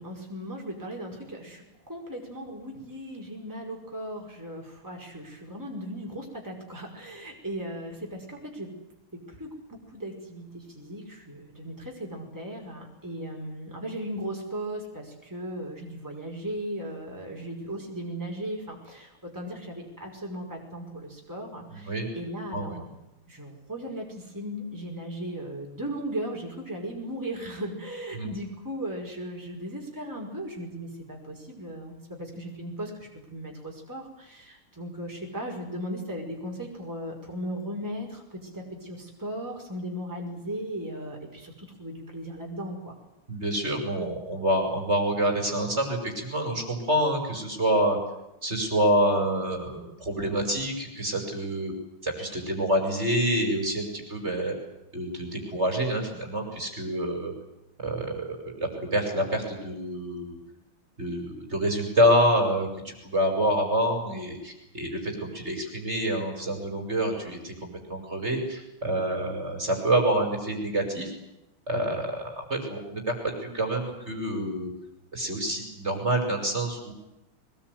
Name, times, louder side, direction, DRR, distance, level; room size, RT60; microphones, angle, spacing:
voice 1, 0.0-8.7 9.1-23.0 23.3-42.9, right 1 dB, 10° right, 0 dB, 5.5 m, -37 dB
voice 2, 21.7-22.1 22.5-22.8 28.1-28.3 43.3-48.0 48.4-51.7 52.0-54.5 54.9-57.3 57.8-60.4 61.0-71.1 71.7-74.7 75.1-76.9, right 1 dB, 30° right, 4 dB, 6.1 m, -27 dB
23.0 x 21.5 x 9.6 m, 0.92 s
omnidirectional pair, 2.3 m